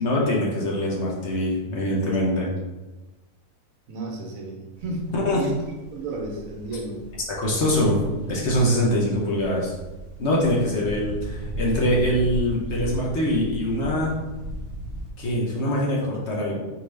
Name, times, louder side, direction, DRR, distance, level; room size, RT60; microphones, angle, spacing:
voice 1, 0.0-2.5 5.1-5.5 7.4-8.0 8.3-9.7 10.2-14.2 15.2-16.6, left 1 dB, 55° left, -3 dB, 1.1 m, -23 dB
voice 2, 3.9-7.0 10.7-10.8, right 2 dB, 70° right, 1 dB, 1.1 m, -33 dB
sound 1, 4.7-15.1, equal, 30° right, 1.4 m, -36 dB
4.6 x 2.9 x 3.2 m, 1.1 s
omnidirectional pair, 1.5 m